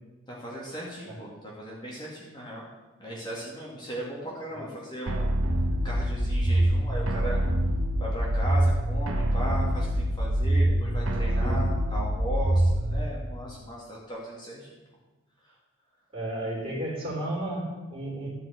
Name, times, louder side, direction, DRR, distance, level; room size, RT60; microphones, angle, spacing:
voice 1, 0.3-2.7 3.0-5.3 5.8-7.4 8.0-14.7, equal, 20° left, -5 dB, 2.5 m, -37 dB
sound 1, 5.1-13.1, right 1 dB, 75° right, 1.2 m, -25 dB
voice 2, 16.1-18.3, right 1 dB, 25° right, -5 dB, 4.2 m, -33 dB
12.5 x 6.1 x 7.9 m, 1.2 s
head